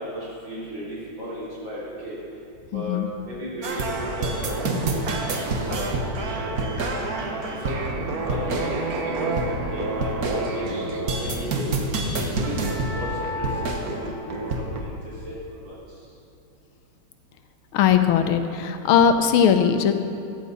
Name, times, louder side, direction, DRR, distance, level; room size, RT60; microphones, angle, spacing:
voice 1, 0.0-2.2 2.7-3.0 3.2-4.3 4.9-5.1 5.4-6.5 7.2-7.7 8.2-11.7 12.3-12.5 12.9-13.1 13.3-13.5 13.8-14.7 15.3-15.7, equal, 70° right, -8 dB, 4.3 m, -35 dB
voice 2, 2.7-3.1 17.7-19.9, left 8 dB, 90° left, 8 dB, 1.6 m, -19 dB
sound 1, 3.6-14.8, right 2 dB, 50° right, 1.4 m, -27 dB
14.5 x 10.5 x 4.1 m, 2.6 s
omnidirectional pair, 2.3 m